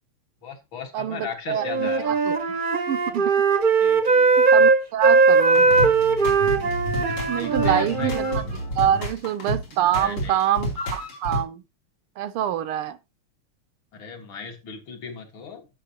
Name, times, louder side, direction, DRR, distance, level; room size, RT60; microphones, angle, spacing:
voice 1, 0.4-2.1 3.8-4.3 7.3-8.1 9.9-10.4 13.9-15.7, left 6 dB, 65° left, 2.4 m, -37 dB
voice 2, 0.9-2.6 2.9-3.6 4.4-5.7 7.3-11.6 12.2-13.0, right 10 dB, 80° right, 1.6 m, -26 dB
Wind instrument woodwind instrument, 1.6-8.4, right 4 dB, 40° right, 0.7 m, -19 dB
sound 1, 5.5-11.4, equal, 85° left, 4.1 m, -30 dB
15.0 x 6.1 x 2.8 m
omnidirectional pair, 2.4 m